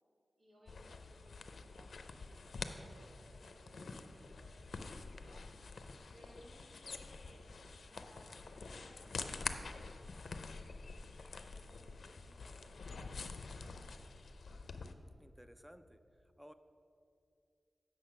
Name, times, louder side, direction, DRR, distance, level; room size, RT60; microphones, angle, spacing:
voice 1, 0.4-5.4 6.1-7.4 7.8-10.3 10.9-13.8, equal, 85° right, -5 dB, 2.4 m, -64 dB
sound 1, 0.7-14.9, left 4 dB, 80° left, 0.5 m, -47 dB
voice 2, 15.2-16.5, equal, 5° right, 10 dB, 0.3 m, -58 dB
8.5 x 6.3 x 5.7 m, 2.5 s
wide cardioid pair, 110°, 0 cm